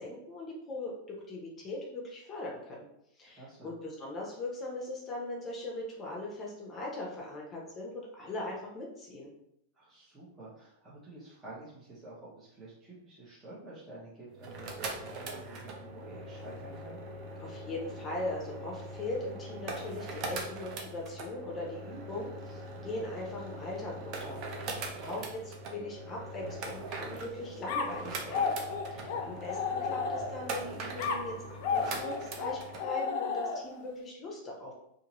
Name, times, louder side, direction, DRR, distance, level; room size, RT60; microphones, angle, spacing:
voice 1, 0.0-2.8 3.1-9.3 17.4-24.4 24.7-28.6 28.9-34.7, left 2 dB, 25° left, -2 dB, 0.7 m, -40 dB
voice 2, 3.3-3.7 9.7-17.0 24.8-25.2 29.0-29.3, right 2 dB, 20° right, -8 dB, 0.9 m, -50 dB
sound 1, 14.3-32.8, right 2 dB, 45° right, 0.5 m, -41 dB
sound 2, 27.7-30.5 31.0-33.9, left 5 dB, 60° left, 0.4 m, -33 dB
2.7 x 2.6 x 2.9 m, 0.77 s
hypercardioid pair, 125°, 0 cm